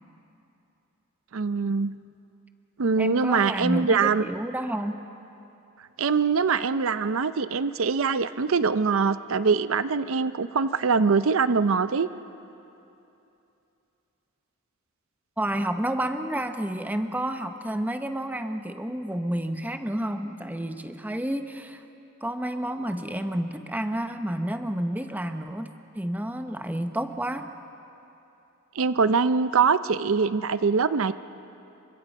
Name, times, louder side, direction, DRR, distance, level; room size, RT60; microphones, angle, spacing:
voice 1, 1.3-1.9 2.8-4.2 6.0-12.1 28.8-31.1, right 5 dB, 65° right, 13 dB, 0.5 m, -23 dB
voice 2, 3.0-5.0 15.4-21.8 22.2-25.7 25.9-27.5, right 1 dB, 10° right, 7 dB, 0.8 m, -30 dB
29.0 x 23.5 x 5.3 m, 2.8 s
head